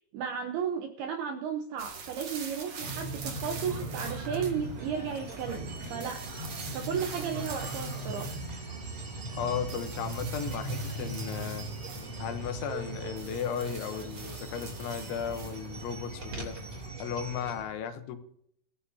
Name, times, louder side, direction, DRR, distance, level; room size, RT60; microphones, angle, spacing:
voice 1, 0.1-8.4, right 7 dB, 75° right, 4 dB, 2.3 m, -34 dB
sound 1, 1.8-16.9, right 5 dB, 50° right, 2.2 m, -45 dB
sound 2, 2.8-17.6, right 2 dB, 30° right, 3.3 m, -39 dB
voice 2, 9.3-11.7 12.2-16.6 17.0-18.2, left 8 dB, 75° left, 8 dB, 3.2 m, -35 dB
24.0 x 16.0 x 2.8 m, 0.70 s
omnidirectional pair, 5.7 m